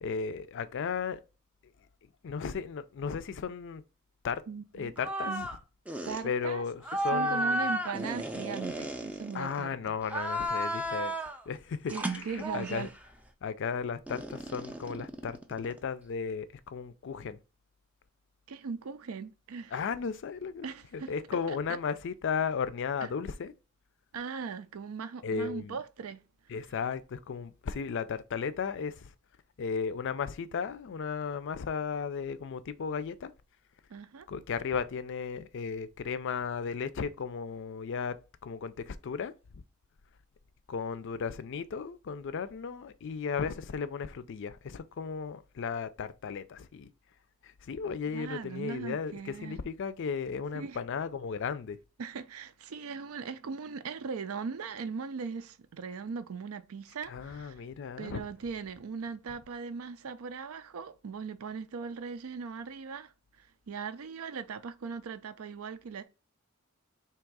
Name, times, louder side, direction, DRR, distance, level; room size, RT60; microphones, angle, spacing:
voice 1, 0.0-1.2 2.2-3.8 4.2-4.4 4.7-5.3 6.2-7.7 9.3-11.1 11.5-12.9 13.4-17.4 19.7-20.7 20.9-23.5 25.2-25.8 26.5-29.1 29.6-33.3 34.3-38.2 38.4-39.6 40.7-46.9 47.4-51.8 57.1-58.2, left 6 dB, 60° left, 0.4 m, -35 dB
voice 2, 4.5-4.9 5.3-5.5 6.1-6.6 6.9-10.0 11.9-12.9 18.5-19.8 20.6-21.1 21.5-21.8 23.0-23.1 24.1-26.2 33.9-34.3 48.1-49.6 50.5-50.8 52.0-57.6 58.0-63.1 63.4-66.0, right 5 dB, 80° right, 0.4 m, -39 dB
sound 1, 5.0-5.6 5.9-6.2 6.8-9.6 10.0-11.4 11.9-13.0 14.1-15.9, right 1 dB, 5° right, 0.4 m, -33 dB
3.5 x 2.9 x 4.6 m
head